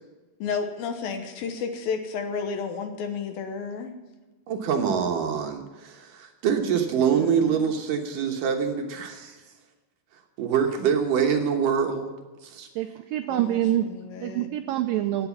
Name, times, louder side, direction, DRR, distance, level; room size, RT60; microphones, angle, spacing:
voice 1, 0.4-3.9 7.1-7.6 13.3-13.6 13.9-14.5, left 5 dB, 70° left, 7 dB, 2.6 m, -32 dB
voice 2, 4.5-9.4 10.4-12.1 12.4-12.7, right 7 dB, 65° right, 4 dB, 2.4 m, -25 dB
voice 3, 12.8-13.9 14.2-15.3, right 13 dB, 85° right, 8 dB, 2.0 m, -26 dB
17.5 x 8.2 x 7.2 m, 1.2 s
omnidirectional pair, 4.7 m